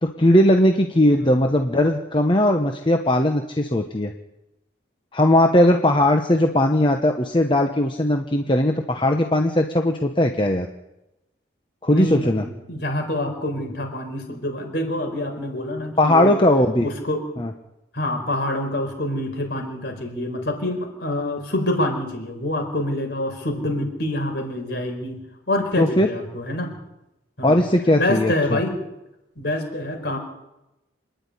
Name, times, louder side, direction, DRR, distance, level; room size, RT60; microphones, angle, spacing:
voice 1, 0.0-4.1 5.1-10.7 11.8-12.4 16.0-16.9 17.4-17.5 25.8-26.1 27.4-28.6, left 1 dB, 25° left, 4 dB, 1.1 m, -18 dB
voice 2, 11.9-16.3 16.8-17.3 17.9-26.7 27.4-27.6 28.0-28.8 29.4-30.2, left 1 dB, 55° left, 3 dB, 5.0 m, -26 dB
26.0 x 10.5 x 9.9 m, 0.93 s
head